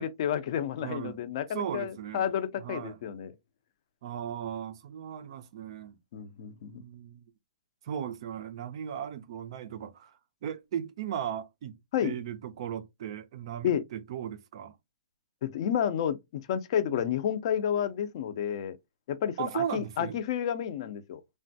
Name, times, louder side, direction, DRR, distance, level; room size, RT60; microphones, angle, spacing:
voice 1, 0.0-3.3 6.1-6.7 11.9-12.1 13.6-13.8 15.4-18.8 19.1-21.2, left 9 dB, 35° left, 0.4 m, -30 dB
voice 2, 0.8-1.2 1.5-2.3 2.6-3.0 4.0-6.0 6.7-7.3 7.8-14.8 19.4-20.2, right 9 dB, 35° right, 0.4 m, -37 dB
3.2 x 2.2 x 2.6 m
hypercardioid pair, 170°, 5 cm